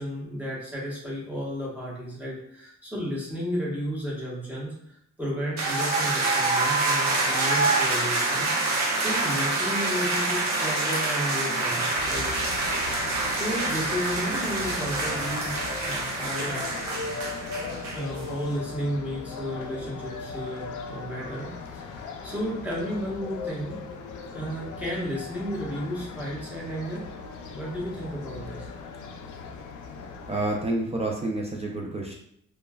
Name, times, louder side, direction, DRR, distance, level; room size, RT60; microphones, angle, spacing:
voice 1, 0.0-12.3 13.3-15.6 15.8-16.7 17.9-23.8 24.2-27.1 27.5-28.7, equal, 5° right, -6 dB, 1.0 m, -33 dB
sound 1, 5.6-18.3, right 2 dB, 60° right, 0.9 m, -26 dB
sound 2, 12.0-30.6, left 4 dB, 75° left, 0.5 m, -38 dB
voice 2, 30.3-32.1, right 2 dB, 20° right, -1 dB, 0.4 m, -29 dB
3.0 x 2.3 x 2.2 m, 0.72 s
cardioid pair, 95°, 31 cm